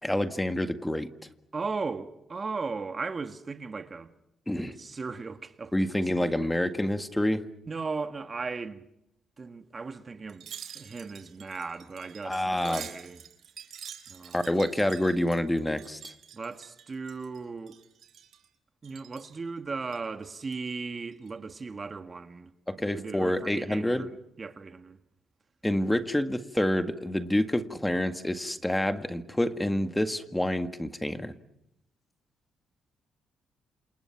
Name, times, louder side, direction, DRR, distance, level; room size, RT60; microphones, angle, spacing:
voice 1, 0.0-1.1 4.5-4.7 5.7-7.4 12.2-12.9 14.3-16.1 22.7-24.0 25.6-31.3, left 1 dB, 10° left, 1.9 m, -27 dB
voice 2, 1.5-4.1 4.6-6.6 7.7-8.8 9.4-13.2 14.1-14.4 16.3-17.8 18.8-22.5 22.8-25.0, right 4 dB, 35° right, 1.7 m, -37 dB
Wind chime, 10.3-17.4 17.7-18.5 18.8-19.4 19.8-20.7 21.1-21.3, right 9 dB, 65° right, 3.8 m, -47 dB
28.5 x 28.0 x 6.0 m
cardioid pair, 90°, 0 cm